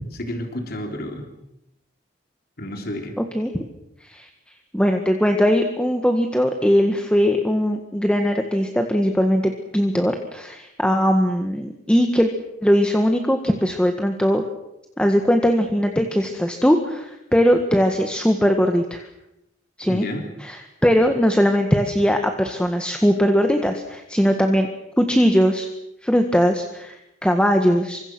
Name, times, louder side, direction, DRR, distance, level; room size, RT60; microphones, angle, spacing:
voice 1, 0.1-1.3 2.6-3.1 19.9-20.3, left 1 dB, 50° left, 3 dB, 3.5 m, -30 dB
voice 2, 3.2-3.6 4.0-4.3 4.7-12.3 12.6-14.4 15.0-19.0 19.8-20.1 20.4-24.7 25.0-25.7 26.0-28.0, equal, 5° left, 5 dB, 1.7 m, -20 dB
28.5 x 25.5 x 6.2 m, 0.86 s
head